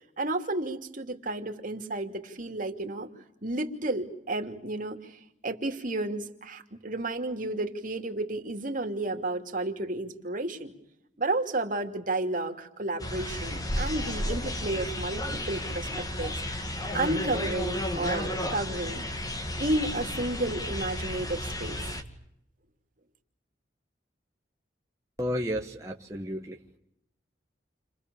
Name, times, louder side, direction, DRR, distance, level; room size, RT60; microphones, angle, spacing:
voice 1, 0.2-3.1 3.4-5.0 5.4-10.7 11.2-15.9 16.2-16.3 16.9-19.1 19.6-21.8, right 2 dB, 50° right, 4 dB, 3.0 m, -32 dB
sound 1, 13.0-22.0, left 1 dB, 20° left, 2.2 m, -33 dB
voice 2, 25.2-26.6, equal, 15° right, 0 dB, 1.5 m, -32 dB
30.0 x 24.5 x 7.1 m, 0.78 s
head